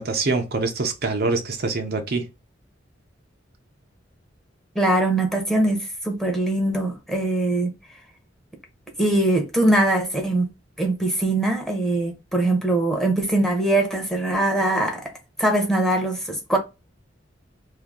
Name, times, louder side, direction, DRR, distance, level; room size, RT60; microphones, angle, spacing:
voice 1, 0.0-2.3, right 3 dB, 55° right, 0.7 m, -24 dB
voice 2, 4.7-7.7 9.0-10.5 10.8-15.1 15.4-16.6, right 1 dB, ahead, 0.9 m, -22 dB
2.7 x 2.7 x 3.6 m
head